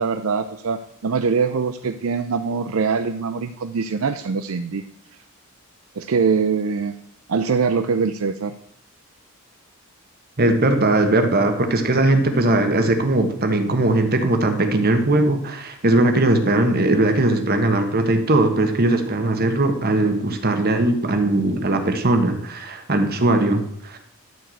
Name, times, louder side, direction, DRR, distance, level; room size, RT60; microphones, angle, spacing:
voice 1, 0.0-4.8 6.0-6.9 7.3-8.5, right 5 dB, 70° right, 9 dB, 0.5 m, -23 dB
voice 2, 10.4-24.0, right 2 dB, 45° right, 6 dB, 1.4 m, -19 dB
12.5 x 4.7 x 7.7 m, 0.73 s
head